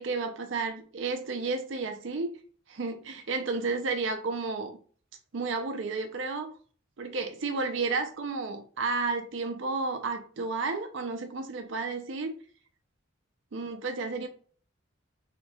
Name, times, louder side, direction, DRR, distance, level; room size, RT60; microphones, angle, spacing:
voice 1, 0.0-2.3 2.7-4.8 5.3-6.5 7.0-12.3 13.5-14.3, right 4 dB, 70° right, 6 dB, 0.5 m, -32 dB
2.9 x 2.2 x 4.2 m, 0.44 s
head